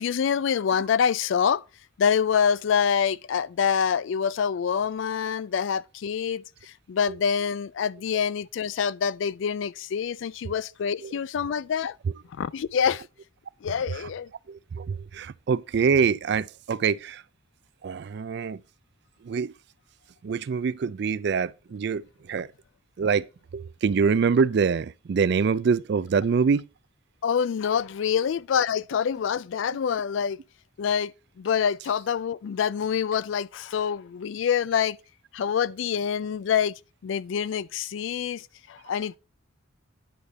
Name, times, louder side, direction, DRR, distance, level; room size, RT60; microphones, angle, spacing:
voice 1, 0.0-1.6 2.0-12.0 12.3-13.0 13.6-14.3 27.2-30.4 30.8-35.0 35.3-36.7 37.0-39.2, left 7 dB, 70° left, 0.3 m, -26 dB
voice 2, 14.5-17.2 17.8-18.6 19.2-19.5 20.2-22.5 23.0-23.3 23.5-26.7, right 5 dB, 55° right, 0.3 m, -25 dB
10.0 x 5.1 x 4.0 m
head